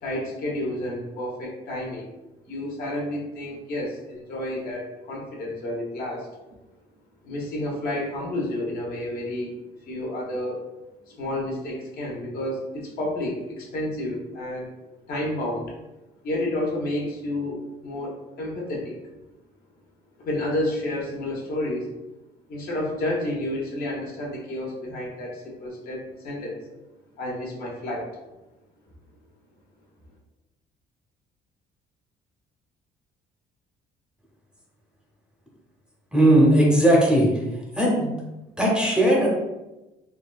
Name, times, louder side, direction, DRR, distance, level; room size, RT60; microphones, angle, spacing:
voice 1, 0.0-2.1 2.5-6.3 7.2-9.5 9.8-10.7 11.1-14.7 15.1-15.7 16.2-19.0 20.2-21.9 22.5-26.6 27.2-28.1, left 1 dB, 60° left, -3 dB, 1.0 m, -30 dB
voice 2, 36.1-37.3 37.8-38.1 38.6-39.3, right 1 dB, 5° right, -3 dB, 0.7 m, -18 dB
3.7 x 2.2 x 2.3 m, 1.0 s
cardioid pair, 110°, 17 cm